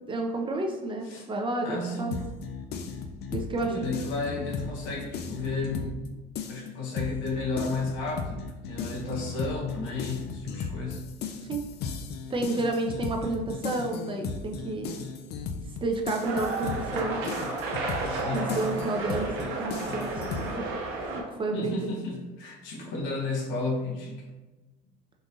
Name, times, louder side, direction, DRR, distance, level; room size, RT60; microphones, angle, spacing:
voice 1, 0.1-2.1 3.3-3.9 11.5-11.7 12.3-14.9 15.8-17.2 18.3-20.7 21.1-21.8 22.8-22.9, right 2 dB, 25° right, 2 dB, 0.5 m, -31 dB
voice 2, 1.6-2.2 3.6-5.9 6.5-11.0 18.1-18.6 21.5-24.3, left 3 dB, 70° left, 0 dB, 0.9 m, -33 dB
sound 1, 2.1-6.1 6.3-20.5, left 5 dB, 55° left, 0.4 m, -36 dB
sound 2, 16.2-21.2, right 3 dB, 75° right, 0.8 m, -32 dB
3.8 x 2.5 x 2.7 m, 1.1 s
supercardioid pair, 85°, 21 cm